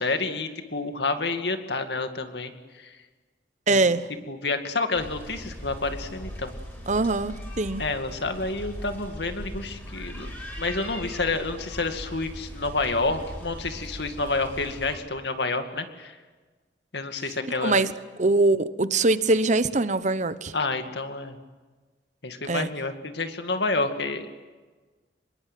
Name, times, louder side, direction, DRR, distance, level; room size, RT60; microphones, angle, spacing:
voice 1, 0.0-2.9 3.7-3.8 4.3-6.5 7.8-10.3 10.6-16.2 16.9-17.8 20.5-21.4 22.2-24.3, left 3 dB, 65° left, 7 dB, 2.3 m, -29 dB
voice 2, 3.7-4.0 6.9-7.8 17.5-17.9 18.2-20.5 22.5-22.7, right 2 dB, 40° right, 14 dB, 1.0 m, -23 dB
sound 1, 4.9-15.0, equal, 15° left, 6.8 m, -39 dB
25.5 x 21.5 x 9.2 m, 1.3 s
head